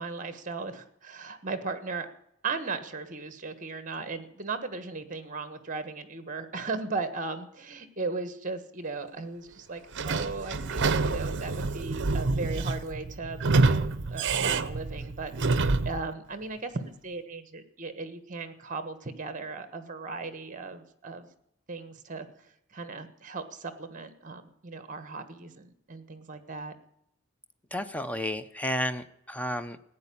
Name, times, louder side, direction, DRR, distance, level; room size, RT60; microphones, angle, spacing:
voice 1, 0.0-2.1 2.4-21.3 21.7-26.7, right 4 dB, 35° right, 11 dB, 1.4 m, -37 dB
Sliding door / Squeak, 9.9-16.0, right 3 dB, 55° right, 0.7 m, -27 dB
voice 2, 27.7-29.8, left 1 dB, 5° left, 10 dB, 0.6 m, -32 dB
15.0 x 9.6 x 8.5 m, 0.76 s
head